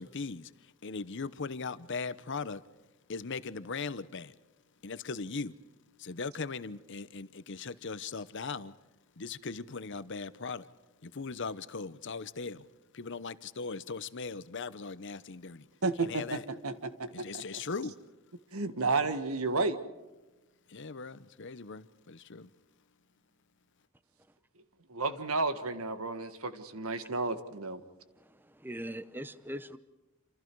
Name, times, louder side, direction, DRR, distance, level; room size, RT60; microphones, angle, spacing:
voice 1, 0.0-2.6 3.1-4.3 4.8-5.5 6.0-8.7 9.2-10.7 11.0-12.7 12.9-15.7 16.0-16.4 17.1-17.9 20.7-22.5, left 4 dB, 55° left, 0.9 m, -39 dB
voice 2, 15.8-17.4 18.5-19.8 24.9-27.8, right 3 dB, 85° right, 1.7 m, -32 dB
voice 3, 28.2-29.8, equal, 10° right, 0.8 m, -41 dB
27.5 x 27.5 x 4.7 m
head